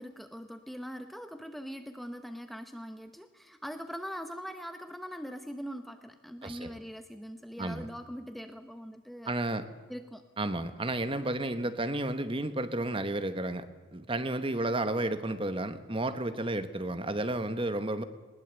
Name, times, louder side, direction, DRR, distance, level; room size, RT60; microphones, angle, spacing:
voice 1, 0.0-9.3 9.9-10.2, equal, ahead, 7 dB, 0.8 m, -42 dB
voice 2, 6.4-6.7 7.6-7.9 9.2-9.6 10.4-13.7 13.9-18.0, right 2 dB, 25° right, 11 dB, 1.0 m, -32 dB
20.5 x 19.5 x 8.1 m, 1.4 s
head